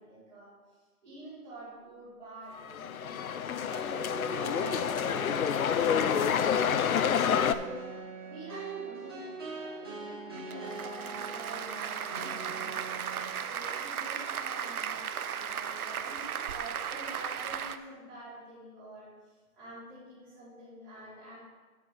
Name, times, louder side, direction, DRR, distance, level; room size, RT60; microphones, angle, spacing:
voice 1, 0.0-5.2 7.4-12.9 13.3-21.3, right 1 dB, 5° left, -17 dB, 2.8 m, -48 dB
sound 1, 2.6-7.5, left 8 dB, 65° left, 0.6 m, -28 dB
sound 2, 3.7-13.3, right 3 dB, 15° right, 0.9 m, -42 dB
Applause, 10.4-17.8, right 8 dB, 70° right, 0.7 m, -36 dB
9.8 x 7.6 x 3.7 m, 1.3 s
hypercardioid pair, 180°, 45 cm